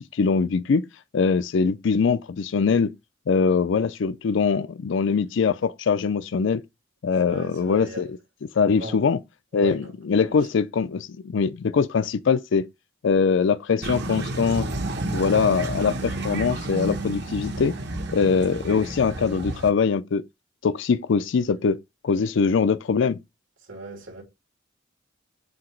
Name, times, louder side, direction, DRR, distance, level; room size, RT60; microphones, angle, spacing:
voice 1, 0.1-0.8 1.1-2.9 3.3-6.6 7.0-8.1 8.5-9.2 9.5-12.6 13.0-14.7 15.1-17.7 18.1-20.2 20.6-21.8 22.0-23.2, left 5 dB, 65° left, 0.4 m, -22 dB
voice 2, 7.2-8.1 8.8-9.1 9.5-9.9 10.2-10.5 23.6-24.2, right 1 dB, 75° right, 2.8 m, -37 dB
sound 1, 13.8-19.7, right 2 dB, 60° right, 1.2 m, -31 dB
7.8 x 2.8 x 4.5 m
head